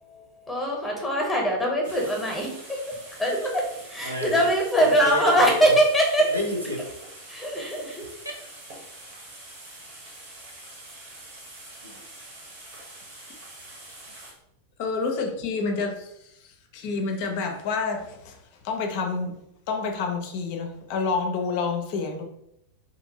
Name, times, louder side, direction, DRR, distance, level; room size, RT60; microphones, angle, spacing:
voice 1, 0.1-2.5 2.9-3.0 3.2-3.6 3.9-6.2 7.3-8.1, equal, 5° left, 0.8 m, -22 dB
sound 1, 1.8-14.3, right 2 dB, 50° right, 0.9 m, -45 dB
voice 2, 4.0-5.8 6.2-7.0 11.8-12.0 14.1-14.2, equal, 85° right, 0.6 m, -32 dB
voice 3, 14.8-16.1 16.4-18.4 18.6-19.4 19.7-22.2, left 4 dB, 45° left, 0.4 m, -28 dB
2.6 x 2.5 x 2.7 m
figure-of-eight pair, 90°, 0 cm